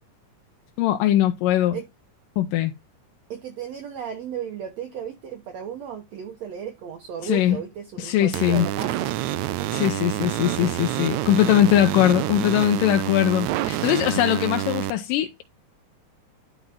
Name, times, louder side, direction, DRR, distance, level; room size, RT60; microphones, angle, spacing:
voice 1, 0.8-1.8 2.4-2.7 7.2-7.6 8.0-8.7 9.7-15.4, left 12 dB, 85° left, 2.3 m, -21 dB
voice 2, 3.3-9.1 9.5-9.8, right 8 dB, 65° right, 2.0 m, -35 dB
sound 1, 8.3-14.9, right 14 dB, 80° right, 1.7 m, -27 dB
11.0 x 4.0 x 3.6 m
omnidirectional pair, 3.8 m